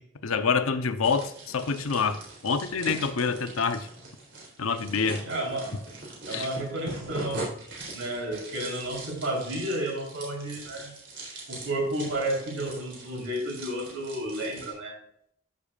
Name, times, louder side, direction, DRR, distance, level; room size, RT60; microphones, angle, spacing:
voice 1, 0.0-3.9 4.6-5.2 6.3-6.5, left 5 dB, 80° left, 0.8 m, -27 dB
sound 1, 1.0-14.7, right 2 dB, 60° right, 3.6 m, -41 dB
voice 2, 5.2-5.8 6.3-7.6 7.9-11.0 11.5-15.0, right 1 dB, 75° right, 3.8 m, -32 dB
13.5 x 6.7 x 2.4 m
head